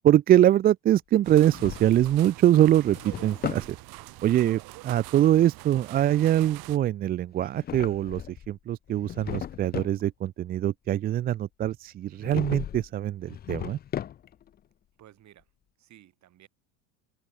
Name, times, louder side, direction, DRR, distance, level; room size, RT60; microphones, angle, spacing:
voice 1, 0.0-3.7 4.2-8.2 8.5-13.8, right 12 dB, 25° right, 0.3 m, -23 dB
sound 1, 1.2-6.8, right 21 dB, 60° right, 6.1 m, -44 dB
Drawer open or close, 1.3-2.2 2.7-3.7 7.4-8.5 8.9-10.0 12.2-12.9 13.2-14.5, left 10 dB, 25° left, 0.5 m, -37 dB
voice 2, 15.0-15.5 15.8-16.5, right 12 dB, 40° right, 5.2 m, -54 dB
open air
supercardioid pair, 125°, 41 cm